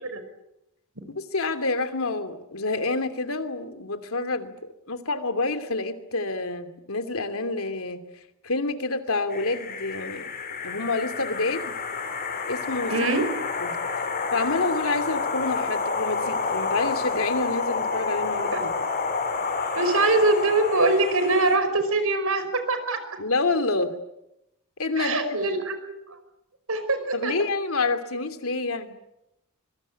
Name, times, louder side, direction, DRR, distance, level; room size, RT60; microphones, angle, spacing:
voice 1, 1.2-4.5 4.9-8.0 8.4-10.3 10.6-11.8 12.5-13.0 13.6-13.7 14.3-18.9 23.2-23.9 24.8-25.6 27.1-28.9, left 3 dB, 80° left, 9 dB, 2.8 m, -28 dB
sound 1, 9.3-21.6, left 4 dB, 45° left, 4.9 m, -29 dB
voice 2, 12.9-13.2 19.8-23.0 25.0-26.2 26.7-27.5, right 2 dB, 90° right, 10 dB, 5.4 m, -23 dB
25.0 x 23.5 x 8.7 m, 0.86 s
head